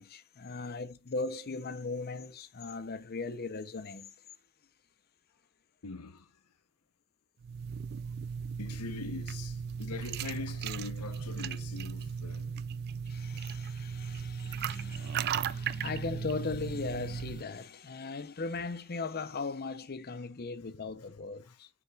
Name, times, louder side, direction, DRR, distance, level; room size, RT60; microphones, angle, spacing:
voice 1, 0.0-4.1 13.1-21.7, left 3 dB, 45° left, 0.7 m, -38 dB
voice 2, 5.8-6.4 8.6-12.5 15.1-15.8 21.4-21.6, left 4 dB, 90° left, 0.8 m, -43 dB
sound 1, 7.4-17.4, right 7 dB, 45° right, 0.3 m, -36 dB
7.1 x 6.6 x 2.4 m
head